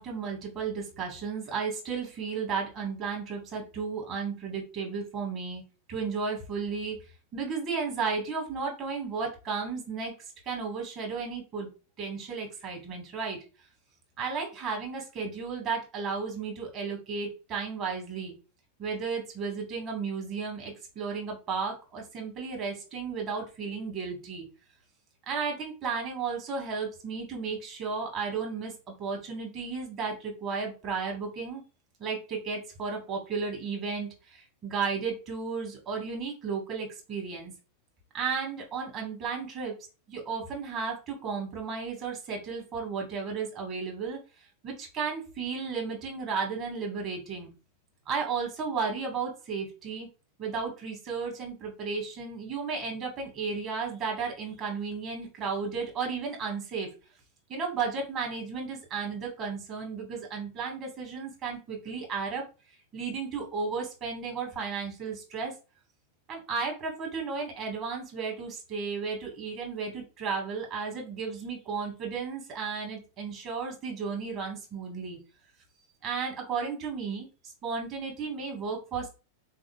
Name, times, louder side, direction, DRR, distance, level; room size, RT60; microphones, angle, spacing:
voice 1, 0.0-5.6 5.9-7.0 7.3-10.1 10.4-11.7 12.0-13.4 14.2-18.3 18.8-24.5 25.3-31.6 32.0-37.5 38.1-39.7 40.1-44.2 44.6-47.5 48.0-50.1 50.4-56.9 57.5-62.4 62.9-65.5 66.3-75.2 76.0-79.1, right 5 dB, 30° right, 0 dB, 1.5 m, -34 dB
3.8 x 3.6 x 2.3 m, 0.32 s
figure-of-eight pair, 90°, 0 cm